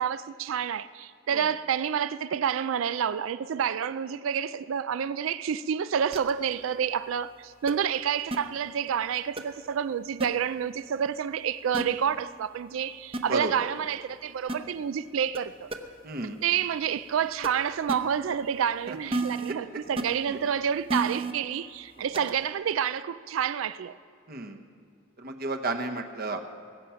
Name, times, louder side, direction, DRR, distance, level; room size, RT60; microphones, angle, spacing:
voice 1, 0.0-15.7 16.4-24.0, right 8 dB, 80° right, 0.4 m, -29 dB
sound 1, 6.1-6.3 7.7-7.8 8.3-8.4 9.4-9.5 10.2-10.3 11.7-11.8 13.1-13.2 14.5-14.6 15.3-15.4 15.7-15.8 17.4-17.5 17.9-18.0 19.1-19.5 20.0-20.1 20.9-21.3 22.1-22.3, right 2 dB, 30° right, 0.8 m, -29 dB
voice 2, 13.3-13.7 16.0-16.4 18.9-19.0 19.7-19.8 20.3-20.5 22.0-22.3 24.3-24.6 25.2-26.5, right 2 dB, 50° right, 1.0 m, -33 dB
21.5 x 8.7 x 5.7 m
head